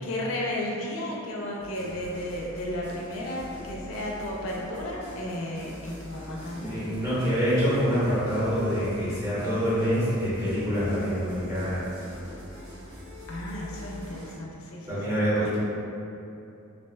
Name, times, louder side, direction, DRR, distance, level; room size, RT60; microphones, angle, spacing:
voice 1, 0.0-6.9 13.3-14.9, left 1 dB, 65° left, -2 dB, 0.4 m, -33 dB
sound 1, 1.6-14.3, left 1 dB, 75° right, 1.2 m, -43 dB
voice 2, 6.6-11.9 14.9-15.6, equal, 15° right, -12 dB, 0.9 m, -26 dB
2.5 x 2.1 x 3.2 m, 2.7 s
head